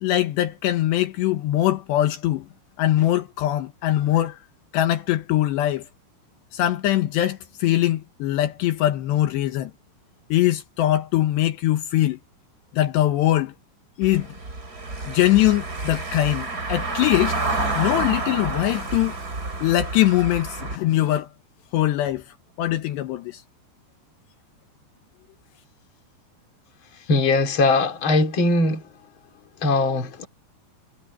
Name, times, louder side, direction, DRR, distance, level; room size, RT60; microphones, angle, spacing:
voice 1, 0.0-2.5 2.8-4.4 4.7-5.8 6.5-9.7 10.3-12.2 12.7-13.5 14.0-14.3 15.1-17.4 17.7-19.1 19.6-21.3 21.7-22.2 22.6-23.4, left 14 dB, 75° left, 3.3 m, -22 dB
Car passing by / Engine, 14.0-20.8, right 3 dB, 20° right, 5.1 m, -29 dB
voice 2, 27.1-28.8 29.6-30.3, left 2 dB, 30° left, 3.1 m, -20 dB
omnidirectional pair, 5.2 m